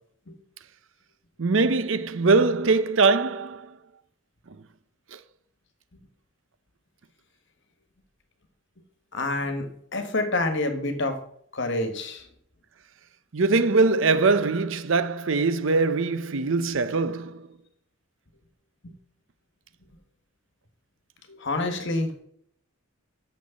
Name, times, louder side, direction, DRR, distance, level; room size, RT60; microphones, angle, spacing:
voice 1, 1.4-3.7 5.1-5.2 13.3-17.5, right 3 dB, 60° right, 0.6 m, -22 dB
voice 2, 9.1-11.2 11.5-12.3 21.3-22.2, left 2 dB, 55° left, 1.5 m, -28 dB
6.7 x 6.3 x 7.0 m
head